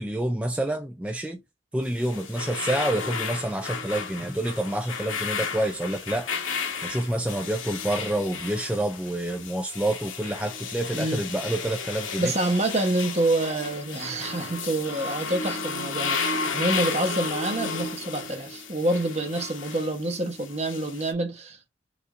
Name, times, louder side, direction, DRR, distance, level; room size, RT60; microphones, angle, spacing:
voice 1, 0.0-1.4 1.7-6.3 6.8-12.3, right 1 dB, 5° right, 0.4 m, -28 dB
sound 1, 1.8-21.1, left 5 dB, 90° left, 1.3 m, -33 dB
voice 2, 12.2-21.7, right 2 dB, 35° right, 0.9 m, -27 dB
5.0 x 2.6 x 3.6 m
head